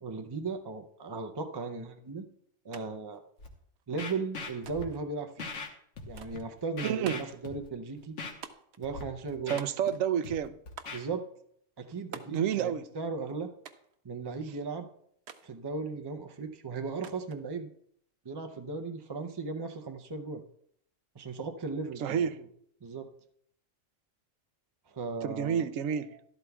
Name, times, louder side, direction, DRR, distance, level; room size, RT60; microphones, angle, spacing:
voice 1, 0.0-2.3 2.6-3.2 3.9-5.5 6.0-8.1 8.8-9.6 10.9-11.2 11.8-13.5 14.0-14.9 15.4-17.7 18.2-20.4 21.1-22.3 22.8-23.1 24.9-25.7, right 4 dB, 40° right, 0.3 m, -37 dB
sound 1, 2.7-2.9 3.1-3.9 4.7-5.1 6.2-6.5 7.0-7.4 8.4-8.8 9.6-10.1 10.8-11.1 12.1-12.5 13.6-14.0 15.3-15.5 17.0-17.4, right 7 dB, 60° right, 0.9 m, -47 dB
Scratching (performance technique), 3.4-3.5 4.0-4.8 5.4-5.7 6.0-6.4 6.8-7.7 8.2-8.3 8.8-9.0 9.3-9.9 10.2-11.0, left 4 dB, 65° left, 1.4 m, -40 dB
voice 2, 6.8-7.3 9.5-10.5 12.3-12.9 22.0-22.4 25.2-26.2, right 8 dB, 85° right, 1.0 m, -30 dB
12.5 x 12.0 x 2.3 m
omnidirectional pair, 1.3 m